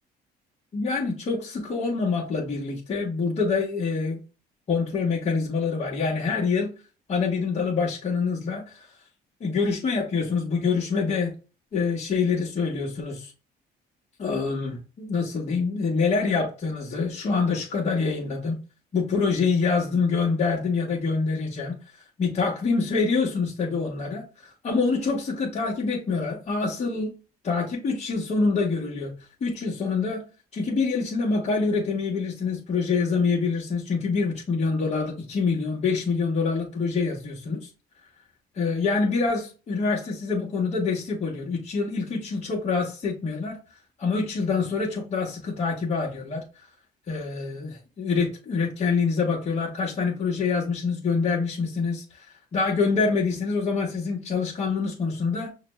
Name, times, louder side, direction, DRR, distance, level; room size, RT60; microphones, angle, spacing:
voice 1, 0.7-4.2 4.7-6.7 7.1-8.9 9.4-11.3 11.7-13.3 14.2-18.6 18.9-21.7 22.2-27.1 27.4-29.1 29.4-30.2 30.5-37.7 38.5-43.6 44.0-46.4 47.1-55.5, left 4 dB, 40° left, 1.1 m, -26 dB
5.8 x 2.2 x 3.1 m
cardioid pair, 110°, 17 cm